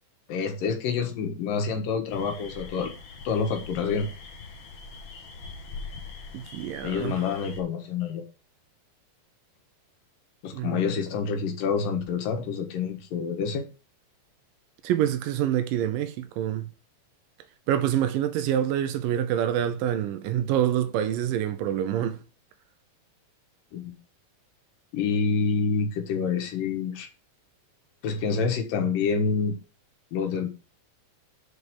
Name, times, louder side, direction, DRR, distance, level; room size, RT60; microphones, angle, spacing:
voice 1, 0.3-2.9 3.2-4.1 6.8-8.2 10.4-13.7 23.7-24.0 24.9-27.1 28.0-29.5 30.1-30.5, left 5 dB, 90° left, 3.1 m, -27 dB
sound 1, 2.1-7.6, left 4 dB, 55° left, 1.5 m, -42 dB
voice 2, 6.3-7.2 10.5-11.0 14.8-16.7 17.7-22.2, right 10 dB, 85° right, 2.5 m, -26 dB
6.7 x 4.8 x 6.7 m
omnidirectional pair, 3.8 m